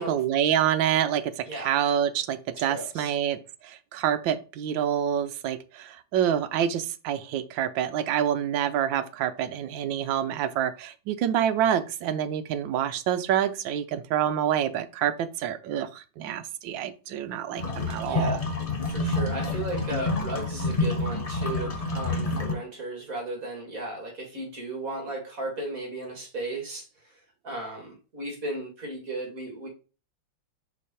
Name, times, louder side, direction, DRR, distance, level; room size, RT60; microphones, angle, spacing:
voice 1, 0.1-18.4, right 10 dB, 80° right, 1.4 m, -27 dB
voice 2, 1.5-1.8 2.5-3.1 18.0-18.5 18.8-29.7, right 2 dB, 45° right, 2.4 m, -35 dB
sound 1, 17.6-22.6, left 2 dB, 45° left, 0.4 m, -28 dB
5.2 x 4.6 x 4.2 m
omnidirectional pair, 2.1 m